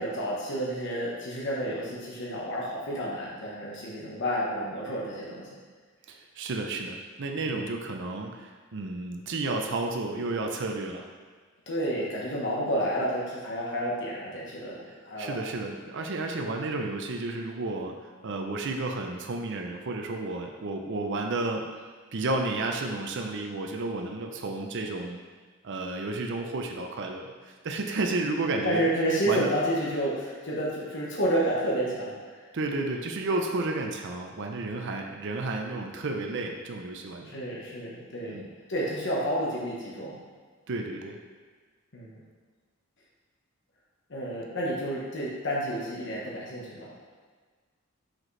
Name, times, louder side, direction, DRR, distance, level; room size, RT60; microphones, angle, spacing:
voice 1, 0.0-5.5 7.4-7.5 11.7-14.8 15.0-15.4 28.6-32.5 37.2-38.4 38.7-40.2 41.9-42.2 44.1-47.0, equal, 60° left, -5 dB, 1.2 m, -30 dB
voice 2, 6.1-11.1 15.2-21.8 22.1-25.2 25.6-28.8 29.3-29.5 32.5-37.4 38.2-38.5 40.7-41.2, right 2 dB, 60° right, 3 dB, 0.6 m, -32 dB
5.9 x 5.0 x 3.3 m, 1.5 s
head